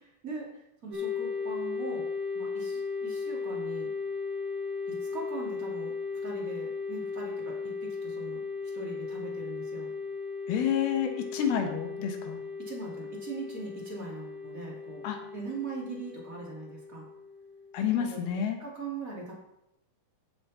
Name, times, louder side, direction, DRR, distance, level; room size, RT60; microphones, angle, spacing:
voice 1, 0.8-2.1 2.3-3.9 4.9-5.9 6.2-8.4 8.7-9.9 12.6-15.0 15.3-17.0 17.9-18.2 18.6-19.3, right 3 dB, 25° right, -3 dB, 2.5 m, -41 dB
sound 1, 0.9-18.3, left 4 dB, 55° right, 5.6 m, -36 dB
voice 2, 10.5-12.4 15.0-15.2 17.7-18.6, left 8 dB, 85° left, 4 dB, 3.2 m, -29 dB
15.5 x 7.2 x 4.3 m, 0.87 s
omnidirectional pair, 4.3 m